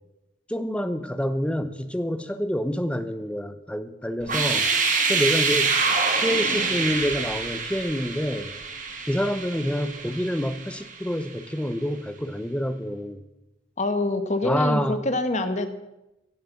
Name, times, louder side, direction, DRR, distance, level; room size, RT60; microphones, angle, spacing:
voice 1, 0.5-4.7 5.1-5.8 6.2-8.5 9.1-13.2 14.4-15.1, equal, 5° left, 10 dB, 0.8 m, -27 dB
sound 1, 4.2-11.1, right 4 dB, 40° right, 2.0 m, -26 dB
voice 2, 4.3-5.1 13.8-15.7, left 2 dB, 35° left, 9 dB, 1.2 m, -27 dB
16.0 x 8.4 x 7.1 m, 0.94 s
head